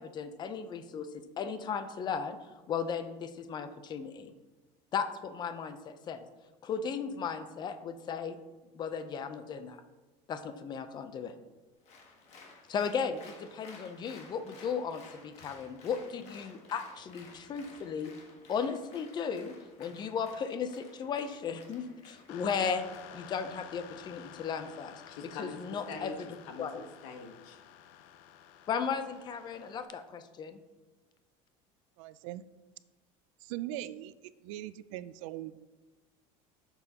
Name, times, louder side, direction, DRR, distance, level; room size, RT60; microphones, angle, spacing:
voice 1, 0.0-2.4 2.7-4.3 4.9-6.3 6.6-8.4 8.7-9.8 10.3-11.3 12.7-18.1 18.5-19.5 19.8-22.8 23.1-25.0 25.4-26.3 26.6-26.8 28.7-30.6, left 6 dB, 30° left, 10 dB, 0.6 m, -36 dB
Applause, 11.8-23.5, left 3 dB, 45° left, 1.5 m, -55 dB
sound 1, 22.3-29.9, left 10 dB, 70° left, 0.6 m, -51 dB
voice 2, 25.1-27.6, left 4 dB, 85° left, 5 dB, 1.3 m, -44 dB
voice 3, 32.0-32.4 33.4-35.6, right 14 dB, 90° right, 15 dB, 0.5 m, -41 dB
10.5 x 7.1 x 2.9 m, 1.2 s
cardioid pair, 150°, 16 cm